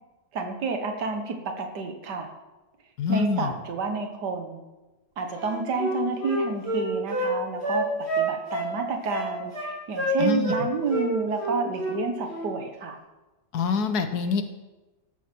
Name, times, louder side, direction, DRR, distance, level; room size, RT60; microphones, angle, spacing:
voice 1, 0.3-2.3 3.1-4.6 5.2-7.9 8.2-13.0, right 4 dB, 75° right, 5 dB, 1.9 m, -30 dB
voice 2, 3.0-3.5 10.2-10.5 13.5-14.4, left 5 dB, 70° left, 9 dB, 1.6 m, -25 dB
Wind instrument woodwind instrument, 5.4-7.3 7.6-8.7 9.1-9.7 10.0-10.6 10.9-11.1 11.4-12.0 12.3-12.5, right 1 dB, 35° right, 4.4 m, -28 dB
14.5 x 12.5 x 4.6 m, 1.1 s
omnidirectional pair, 1.8 m